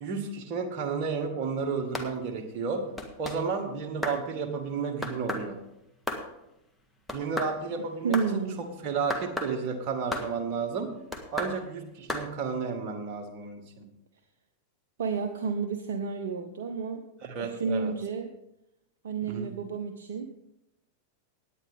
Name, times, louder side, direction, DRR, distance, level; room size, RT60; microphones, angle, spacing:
voice 1, 0.0-2.8 3.2-5.6 7.1-10.9 11.3-13.9 17.2-17.9 19.3-19.5, right 5 dB, 40° right, 4 dB, 1.8 m, -32 dB
sound 1, 1.9-2.1 3.0-3.4 4.0-4.2 5.0-5.5 6.1-6.2 7.1-7.5 8.1-8.3 9.1-9.5 10.1-10.3 11.1-11.5 12.1-12.2, left 1 dB, 5° left, 1.6 m, -33 dB
voice 2, 8.0-8.6 15.0-17.0 17.4-18.3 19.0-20.3, right 5 dB, 60° right, 7 dB, 0.8 m, -31 dB
17.5 x 9.4 x 3.6 m, 0.86 s
figure-of-eight pair, 90°, 0 cm